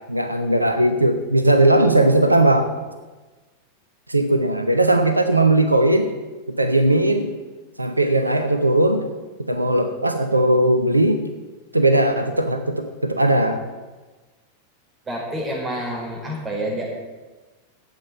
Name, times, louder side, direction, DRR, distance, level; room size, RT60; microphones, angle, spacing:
voice 1, 0.1-2.7 4.1-6.1 6.5-7.4 7.8-9.1 9.5-11.3 11.7-13.6, right 1 dB, 85° right, 7 dB, 0.8 m, -18 dB
voice 2, 15.0-17.0, right 1 dB, 15° right, -3 dB, 4.9 m, -28 dB
9.8 x 8.5 x 8.9 m, 1.2 s
figure-of-eight pair, 90°, 0 cm